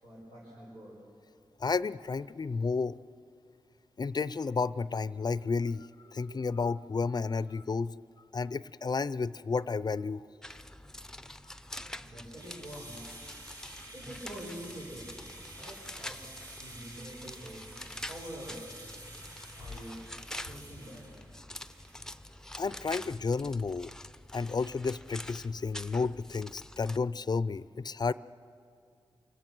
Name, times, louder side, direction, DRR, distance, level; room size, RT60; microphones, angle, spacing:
voice 1, 0.0-0.9 6.0-6.4 12.0-13.0 13.9-15.1 15.4-16.2 16.6-17.7 18.0-18.7 19.5-21.0, right 1 dB, 85° right, -7 dB, 5.5 m, -46 dB
voice 2, 1.6-3.0 4.0-7.9 8.3-10.2 22.6-23.9 24.3-28.1, left 4 dB, 45° left, 17 dB, 0.5 m, -32 dB
sound 1, 10.4-27.0, left 1 dB, 5° left, 0.6 m, -46 dB
sound 2, 12.4-22.3, right 1 dB, 40° right, 2.7 m, -50 dB
28.0 x 17.0 x 6.1 m, 2.4 s
cardioid pair, 65°, 9 cm